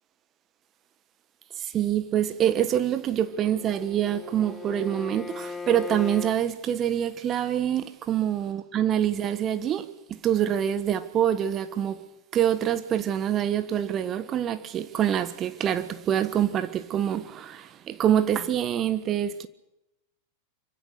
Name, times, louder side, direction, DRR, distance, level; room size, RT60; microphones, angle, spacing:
voice 1, 1.6-12.1 12.3-19.5, right 10 dB, 30° right, 1.4 m, -26 dB
Bowed string instrument, 3.2-6.4, left 4 dB, 15° left, 0.9 m, -39 dB
25.0 x 24.0 x 6.8 m
figure-of-eight pair, 90°, 0 cm